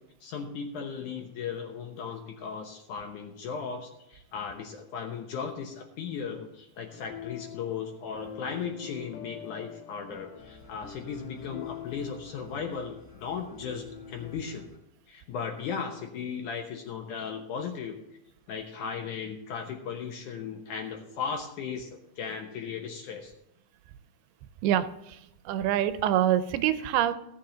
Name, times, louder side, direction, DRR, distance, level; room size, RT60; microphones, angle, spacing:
voice 1, 0.2-14.7 15.1-18.0 18.5-23.3, left 6 dB, 70° left, 3 dB, 2.0 m, -36 dB
sound 1, 6.9-14.4, left 8 dB, 85° left, 3.0 m, -45 dB
sound 2, 10.4-14.8, left 2 dB, 20° left, 0.4 m, -55 dB
voice 2, 24.6-27.1, right 11 dB, 85° right, 12 dB, 2.6 m, -26 dB
16.0 x 7.3 x 3.9 m, 0.83 s
omnidirectional pair, 4.5 m